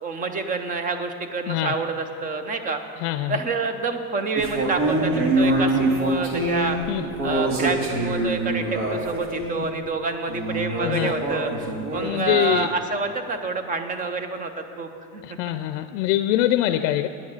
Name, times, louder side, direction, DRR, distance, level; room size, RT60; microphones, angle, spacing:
voice 1, 0.0-2.8 3.3-6.8 7.2-15.4, right 4 dB, 20° right, 8 dB, 0.6 m, -28 dB
voice 2, 3.0-3.4 6.9-7.0 10.8-11.1 12.0-12.7 15.2-17.1, left 13 dB, 75° left, 11 dB, 0.5 m, -23 dB
sound 1, 4.4-9.6 10.3-12.6, right 1 dB, 75° right, 2.1 m, -24 dB
9.8 x 6.4 x 8.7 m, 2.6 s
cardioid pair, 160°, 37 cm